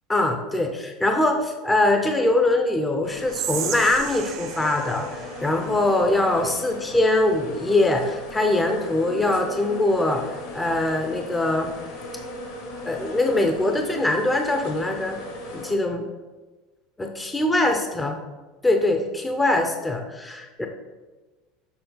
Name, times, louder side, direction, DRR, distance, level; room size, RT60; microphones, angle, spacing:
voice 1, 0.1-10.3 10.5-11.7 12.8-15.2 15.5-16.1 17.0-18.2 18.6-20.7, left 2 dB, 10° left, 4 dB, 0.5 m, -22 dB
sound 1, 3.0-15.7, left 2 dB, 75° left, 1.7 m, -37 dB
Whispering, 3.3-6.5, right 9 dB, 55° right, 0.7 m, -34 dB
7.0 x 4.4 x 3.8 m, 1.2 s
supercardioid pair, 150°, 0 cm